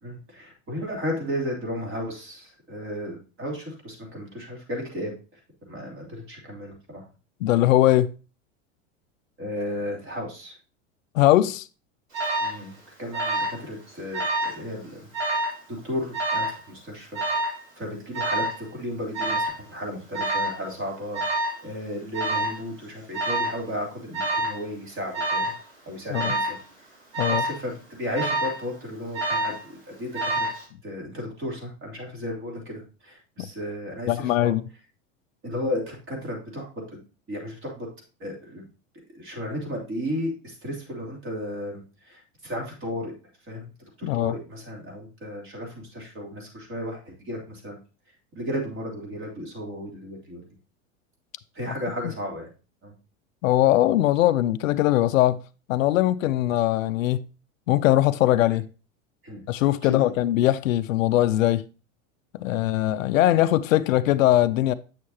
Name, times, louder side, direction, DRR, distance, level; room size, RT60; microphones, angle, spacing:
voice 1, 0.0-5.4 5.6-7.0 9.4-10.6 12.4-15.1 15.8-17.2 17.8-21.2 21.6-25.5 25.9-26.6 27.3-30.5 30.8-34.6 35.4-37.0 37.3-37.9 38.2-38.7 39.1-43.1 43.4-43.7 44.0-47.8 48.3-50.4 51.5-52.5 52.8-52.9 59.2-59.4 59.8-60.0, equal, 30° right, 3.1 m, -34 dB
voice 2, 7.4-8.1 11.1-11.7 26.1-26.3 27.2-27.4 33.4-33.5 34.1-34.6 44.0-44.3 53.4-55.4 55.7-57.2 57.7-58.7 59.5-61.6 62.4-64.7, left 14 dB, 85° left, 0.5 m, -21 dB
Alarm, 12.1-12.6 13.1-13.6 13.9-14.6 15.1-15.6 16.1-16.6 17.1-17.6 18.1-18.6 19.1-19.6 20.1-20.6 21.1-21.6 22.1-22.6 23.1-23.6 24.1-24.6 25.1-25.6 26.1-26.6 27.1-27.6 28.1-28.6 29.1-29.6 30.1-30.6, right 1 dB, 90° right, 3.7 m, -27 dB
8.2 x 6.4 x 2.8 m
hypercardioid pair, 105°, 39 cm